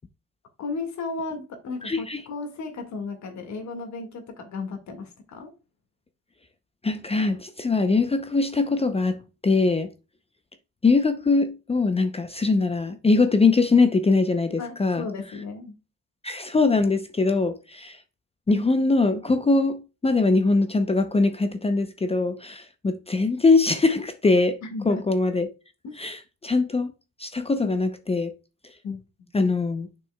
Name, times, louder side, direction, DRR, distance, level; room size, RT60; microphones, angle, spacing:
voice 1, 0.6-5.5 14.6-15.7 24.6-25.0 25.8-26.0 28.8-29.0, left 3 dB, 65° left, 1.9 m, -34 dB
voice 2, 1.8-2.2 6.8-9.2 9.4-9.9 10.8-15.1 16.2-18.0 18.5-24.6 24.9-25.5 26.0-26.9 27.2-28.3 29.3-29.9, left 3 dB, 20° left, 0.6 m, -22 dB
7.6 x 6.1 x 2.3 m
cardioid pair, 90°, 30 cm